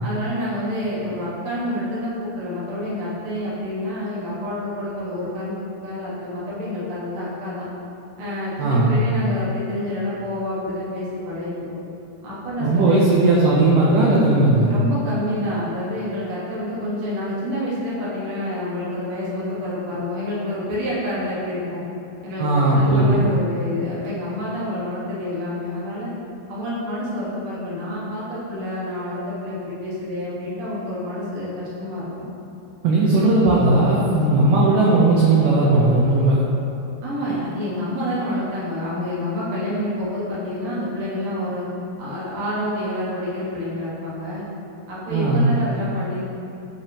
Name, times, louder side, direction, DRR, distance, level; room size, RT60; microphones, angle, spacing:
voice 1, 0.0-5.6 5.8-7.7 8.2-11.8 12.2-13.0 14.7-21.8 22.2-26.1 26.5-32.2 37.0-41.6 42.0-44.4 44.9-46.3, left 1 dB, 65° right, -8 dB, 1.3 m, -28 dB
voice 2, 8.6-9.0 12.6-14.7 22.4-23.3 32.8-36.4 45.1-45.6, right 2 dB, 85° right, -5 dB, 1.9 m, -17 dB
7.8 x 4.9 x 2.8 m, 2.8 s
omnidirectional pair, 4.6 m